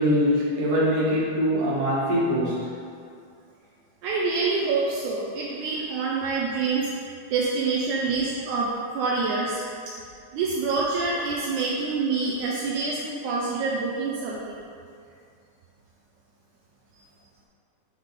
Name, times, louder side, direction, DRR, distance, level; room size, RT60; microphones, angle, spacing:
voice 1, 0.0-2.8, equal, 40° right, -9 dB, 1.4 m, -23 dB
voice 2, 4.0-6.9 7.3-9.6 10.3-14.6, right 4 dB, 85° right, -4 dB, 1.7 m, -26 dB
7.8 x 3.6 x 4.1 m, 2.4 s
omnidirectional pair, 4.0 m